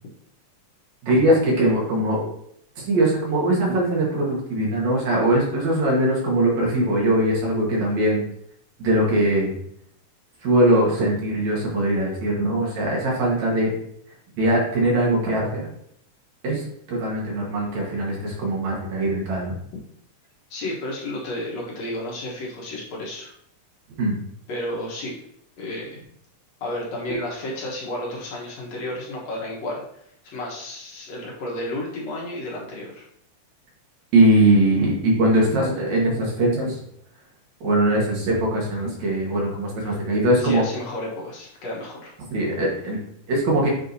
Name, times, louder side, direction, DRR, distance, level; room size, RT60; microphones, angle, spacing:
voice 1, 1.0-2.3 2.8-8.2 8.8-9.5 10.4-13.7 14.4-15.6 16.4-16.6 16.9-19.5 24.0-24.2 27.1-27.2 34.1-36.8 37.6-40.6 42.3-43.0 43.3-43.7, right 1 dB, 65° right, -3 dB, 2.7 m, -21 dB
voice 2, 20.5-23.3 24.5-25.1 25.6-26.0 26.6-33.0 34.8-34.9 39.8-39.9 40.4-42.1, left 1 dB, 65° left, -3 dB, 2.3 m, -32 dB
7.5 x 4.8 x 2.7 m, 0.70 s
omnidirectional pair, 3.6 m